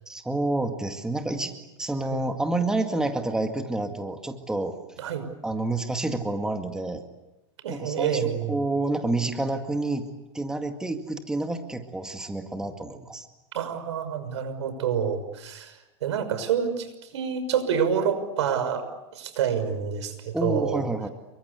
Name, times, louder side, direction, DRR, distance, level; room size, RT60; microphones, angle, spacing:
voice 1, 0.1-4.8 5.4-7.0 7.7-10.1 10.3-13.3 20.3-21.1, right 2 dB, 5° right, 5 dB, 2.1 m, -29 dB
voice 2, 7.6-8.6 13.5-18.9 19.1-20.8, right 7 dB, 80° right, 11 dB, 6.0 m, -27 dB
29.5 x 24.0 x 8.3 m, 0.95 s
supercardioid pair, 140°, 15 cm